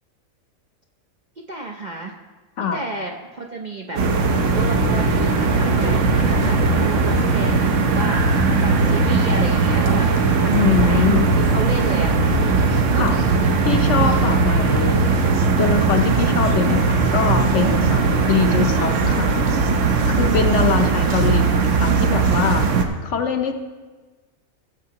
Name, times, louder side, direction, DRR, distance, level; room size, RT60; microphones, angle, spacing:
voice 1, 1.4-2.1 2.7-4.0 4.5-10.1 10.4-12.4, right 2 dB, 45° right, 0 dB, 0.6 m, -32 dB
sound 1, 4.0-22.8, right 4 dB, 65° right, 1.1 m, -18 dB
voice 2, 10.5-11.3 12.9-13.2 13.6-15.0 15.6-18.0 18.3-19.3 20.1-23.5, left 7 dB, 60° left, 5 dB, 1.0 m, -23 dB
16.5 x 7.2 x 2.9 m, 1.3 s
omnidirectional pair, 1.5 m